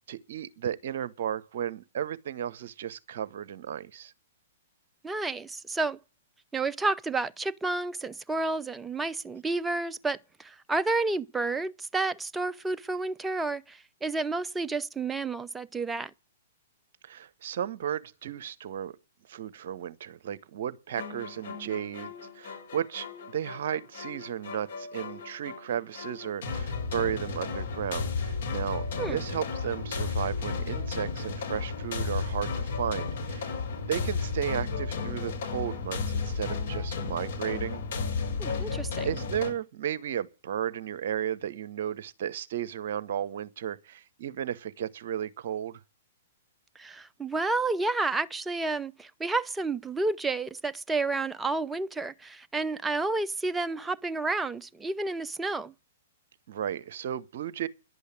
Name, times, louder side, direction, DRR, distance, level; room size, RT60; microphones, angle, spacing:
voice 1, 0.1-4.1 17.0-18.9 19.3-33.6 33.9-37.8 38.5-38.7 39.0-45.8 56.5-57.7, right 9 dB, 50° right, 0.9 m, -34 dB
voice 2, 5.0-6.0 6.5-16.1 29.0-29.2 38.4-39.1 46.8-55.7, right 3 dB, 10° right, 0.6 m, -30 dB
sound 1, 21.0-39.5, left 4 dB, 55° left, 5.4 m, -34 dB
11.0 x 8.3 x 9.6 m
figure-of-eight pair, 110°, 0 cm